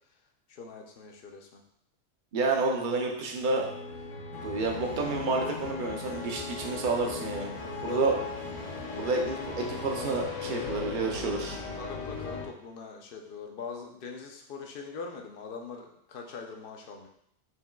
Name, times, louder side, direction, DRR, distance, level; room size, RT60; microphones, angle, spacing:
voice 1, 0.5-1.6 7.8-8.2 11.7-17.1, left 4 dB, 55° left, 2 dB, 0.7 m, -42 dB
voice 2, 2.3-3.7 4.3-7.5 7.8-8.2 9.0-11.6, right 3 dB, 50° right, 1 dB, 0.7 m, -29 dB
sound 1, 3.4-12.5, left 4 dB, 90° left, 1.1 m, -38 dB
sound 2, 4.6-10.3, equal, 30° right, 1.1 m, -47 dB
4.4 x 3.5 x 2.2 m, 0.73 s
omnidirectional pair, 1.3 m